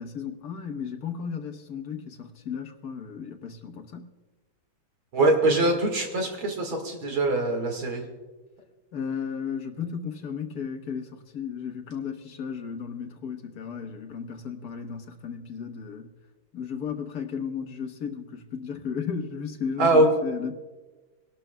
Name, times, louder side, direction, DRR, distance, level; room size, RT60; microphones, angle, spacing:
voice 1, 0.0-4.1 8.9-16.1 16.5-20.5, left 6 dB, 55° left, 1.3 m, -34 dB
voice 2, 5.1-8.0 19.8-20.1, right 2 dB, 70° right, 2.6 m, -23 dB
24.5 x 12.0 x 2.2 m
omnidirectional pair, 2.2 m